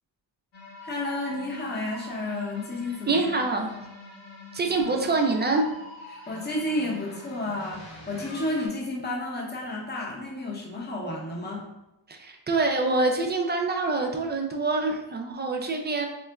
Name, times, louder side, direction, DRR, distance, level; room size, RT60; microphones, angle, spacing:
sound 1, 0.5-8.7, left 2 dB, 75° left, 1.2 m, -45 dB
voice 1, 0.8-3.2 6.1-11.7, left 1 dB, 25° left, -2 dB, 0.8 m, -31 dB
voice 2, 3.1-3.8 4.5-5.7 12.1-16.1, right 3 dB, 25° right, 3 dB, 0.4 m, -25 dB
3.7 x 2.1 x 2.3 m, 0.94 s
cardioid pair, 65°, 44 cm